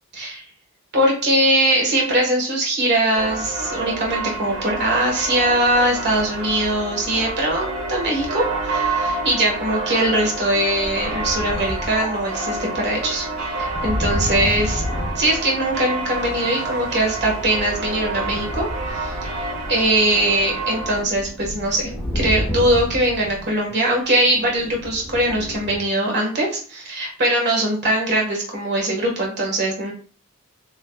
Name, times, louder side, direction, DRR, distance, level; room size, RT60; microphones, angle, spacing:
voice 1, 0.1-0.4 0.9-13.2 13.6-14.8 15.1-29.9, right 1 dB, 50° right, -1 dB, 1.6 m, -21 dB
sound 1, 3.1-21.0, right 2 dB, 85° right, 1.3 m, -28 dB
sound 2, 10.8-16.2 16.9-25.8, left 1 dB, 10° left, 1.8 m, -31 dB
7.2 x 3.1 x 2.4 m, 0.43 s
head